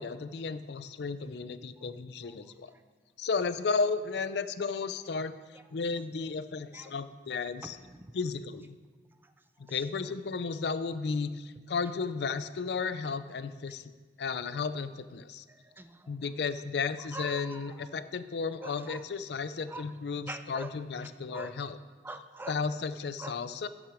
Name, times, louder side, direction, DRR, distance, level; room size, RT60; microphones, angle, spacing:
voice 1, 0.0-2.7 3.2-5.3 5.7-7.8 8.1-8.8 9.6-13.9 14.2-15.4 16.1-21.8 22.5-23.7, left 4 dB, 65° left, 13 dB, 0.4 m, -34 dB
voice 2, 7.6-8.1 9.2-9.3 9.7-9.8 15.5-16.1 17.1-17.9 18.6-19.0 19.7-19.9 20.3-20.7 21.0-21.5 22.0-22.6 23.2-23.4, right 2 dB, 10° right, 9 dB, 0.4 m, -44 dB
12.5 x 6.1 x 4.9 m, 1.4 s
head